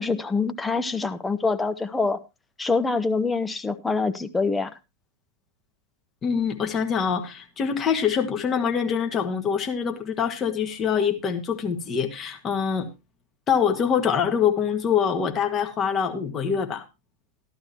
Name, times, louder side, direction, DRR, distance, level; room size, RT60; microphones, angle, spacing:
voice 1, 0.0-2.2 2.6-4.7, left 4 dB, 10° left, 0.8 m, -25 dB
voice 2, 6.2-12.9 13.5-16.8, left 7 dB, 25° left, 1.7 m, -24 dB
13.5 x 12.0 x 2.9 m
figure-of-eight pair, 90°, 0 cm